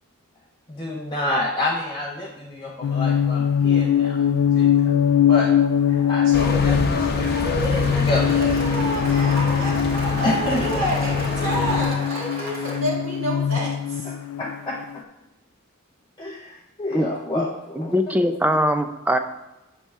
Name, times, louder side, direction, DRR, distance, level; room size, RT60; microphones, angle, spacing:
voice 1, 0.7-5.0 5.3-5.5 6.1-7.4 7.9-8.4 10.2-10.9 14.0-15.1 16.2-18.1, left 1 dB, 20° left, -3 dB, 0.7 m, -29 dB
sound 1, 2.8-14.8, left 8 dB, 80° left, 0.3 m, -22 dB
voice 2, 5.9-6.8 7.2-14.1, equal, 75° right, -5 dB, 1.8 m, -29 dB
sound 2, 6.3-11.8, left 1 dB, 50° left, 0.9 m, -28 dB
Cheering / Applause, 7.4-12.8, left 1 dB, 50° right, 1.4 m, -34 dB
voice 3, 17.8-19.2, equal, 10° right, 7 dB, 0.4 m, -21 dB
7.5 x 3.4 x 5.4 m, 0.98 s
head